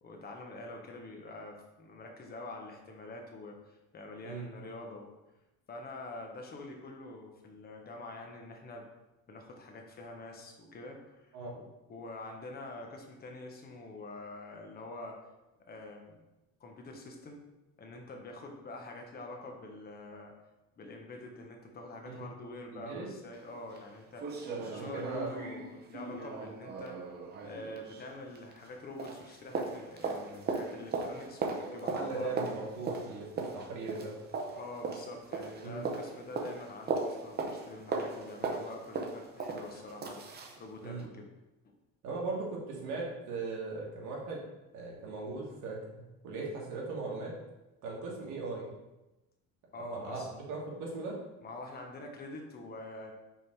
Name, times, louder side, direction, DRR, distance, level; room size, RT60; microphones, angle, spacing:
voice 1, 0.0-5.1 5.7-8.9 9.3-15.2 15.6-16.2 16.6-17.4 17.8-20.3 20.8-32.3 34.5-40.2 40.6-41.3 41.6-41.7 49.7-50.3 51.4-53.1, left 2 dB, 30° left, 2 dB, 1.0 m, -46 dB
voice 2, 22.7-23.1 24.5-25.3 31.6-34.1 35.6-35.9 40.8-41.0 42.0-44.4 44.7-47.3 47.8-48.8 49.8-50.2 50.5-51.2, right 3 dB, 65° right, -3 dB, 1.8 m, -39 dB
sound 1, 23.3-23.4 23.8-23.9 24.2-28.7 29.0-40.6 41.0-41.1, right 4 dB, 30° right, 0.7 m, -38 dB
5.5 x 3.7 x 4.6 m, 1.0 s
cardioid pair, 145°, 33 cm